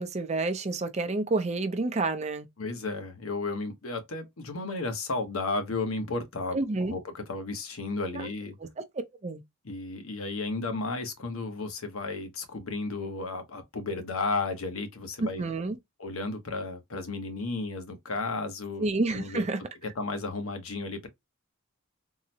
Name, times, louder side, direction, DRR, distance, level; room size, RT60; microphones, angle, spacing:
voice 1, 0.0-2.5 6.5-6.9 8.1-8.3 8.6-8.8 9.2-9.4 15.2-15.8 18.8-19.6, right 2 dB, 30° right, 0.5 m, -29 dB
voice 2, 2.6-6.6 6.9-8.5 9.6-15.4 16.0-18.9 19.1-19.4 20.0-21.1, left 3 dB, 85° left, 0.9 m, -33 dB
3.7 x 2.1 x 2.7 m
head